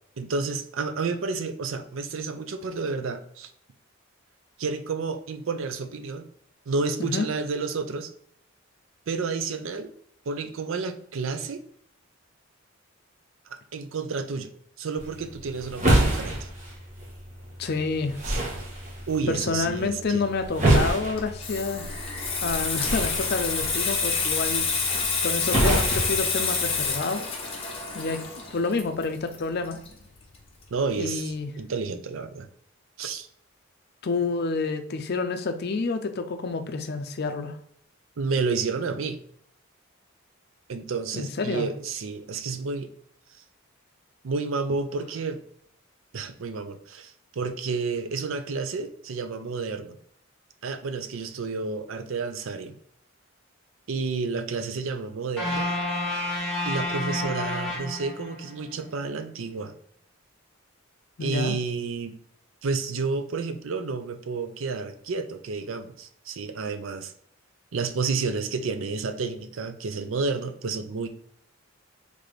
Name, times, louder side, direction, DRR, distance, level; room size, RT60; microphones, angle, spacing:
voice 1, 0.2-3.5 4.6-6.3 6.7-8.1 9.1-9.9 10.3-11.6 13.5-14.5 14.8-16.5 18.2-18.4 19.1-20.3 30.7-32.5 33.0-33.3 38.2-39.2 40.7-42.9 43.3-43.4 44.2-45.4 46.1-50.0 50.6-52.8 53.9-55.7 56.1-56.3 56.6-59.7 61.2-62.1 62.6-67.1 67.7-71.1, right 4 dB, 70° right, 9 dB, 0.5 m, -30 dB
sound 1, 15.0-27.0, right 1 dB, 35° right, 1.2 m, -28 dB
voice 2, 17.6-18.2 19.3-21.9 22.4-24.7 25.2-27.2 27.9-28.2 28.5-29.8 31.0-31.5 34.0-37.6 41.1-41.7 61.2-61.5, left 4 dB, 50° left, 8 dB, 0.5 m, -28 dB
Water tap faucet / Sink (filling or washing), 21.0-30.4 30.6-30.9, left 5 dB, 25° left, 0.8 m, -28 dB
sound 2, 55.4-58.6, left 2 dB, 5° left, 1.7 m, -29 dB
4.0 x 3.3 x 3.2 m, 0.67 s
head